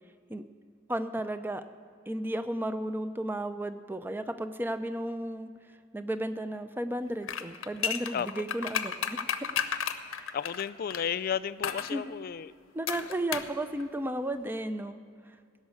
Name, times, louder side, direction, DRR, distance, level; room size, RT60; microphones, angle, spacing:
voice 1, 0.9-1.6 2.1-5.5 5.9-9.2 10.2-10.3 11.9-12.0 12.7-15.0, right 1 dB, 10° right, 10 dB, 0.5 m, -33 dB
sound 1, 7.2-11.0 11.6-11.9 12.9-13.5 13.8-13.9, left 8 dB, 75° left, 0.7 m, -32 dB
voice 2, 10.3-12.5, left 8 dB, 45° left, 16 dB, 0.3 m, -33 dB
17.0 x 6.4 x 8.3 m, 2.3 s
head